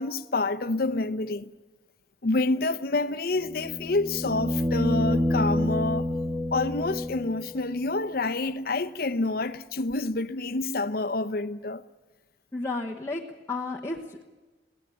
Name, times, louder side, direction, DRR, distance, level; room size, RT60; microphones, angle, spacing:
voice 1, 0.0-1.5 2.2-6.1 6.5-11.8, left 2 dB, 55° left, 0.7 m, -28 dB
sound 1, 3.4-7.5 9.9-10.0, left 1 dB, 10° right, 1.5 m, -28 dB
voice 2, 12.5-13.2 13.5-14.3, left 3 dB, 15° left, 1.1 m, -32 dB
22.5 x 17.5 x 9.0 m
head